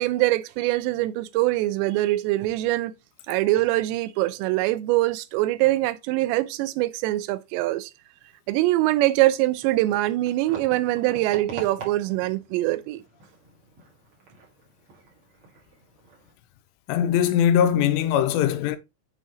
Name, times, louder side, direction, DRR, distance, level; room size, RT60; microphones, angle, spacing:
voice 1, 0.0-2.9 3.3-7.9 8.5-13.0, right 17 dB, 85° right, 2.8 m, -23 dB
sound 1, 9.5-16.3, right 5 dB, 45° right, 2.1 m, -44 dB
voice 2, 16.9-18.8, left 9 dB, 85° left, 2.8 m, -21 dB
7.7 x 4.0 x 3.7 m
omnidirectional pair, 5.0 m